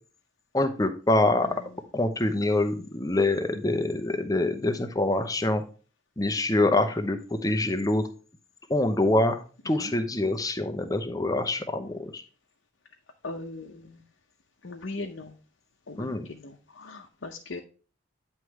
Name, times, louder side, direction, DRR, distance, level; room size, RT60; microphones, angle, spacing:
voice 1, 0.5-1.5 1.9-5.6 6.2-8.0 8.7-9.4 9.6-12.2 16.0-16.2, left 2 dB, 20° left, 7 dB, 0.7 m, -25 dB
voice 2, 13.2-14.0 14.6-15.3 15.9-17.6, left 2 dB, 70° left, 0 dB, 0.8 m, -39 dB
9.6 x 3.2 x 4.6 m, 0.37 s
head